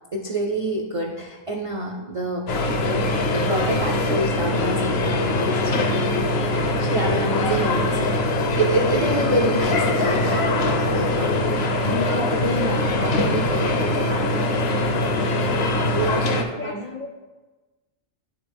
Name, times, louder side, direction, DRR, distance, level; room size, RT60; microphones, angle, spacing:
voice 1, 0.1-2.5 2.8-5.9 6.8-14.4 15.9-16.9, right 1 dB, 60° right, -1 dB, 0.3 m, -28 dB
sound 1, 2.5-16.4, left 2 dB, 60° left, 0.8 m, -22 dB
voice 2, 16.2-17.2, left 4 dB, 80° left, 2 dB, 0.4 m, -36 dB
10.0 x 3.5 x 3.4 m, 1.2 s
omnidirectional pair, 1.3 m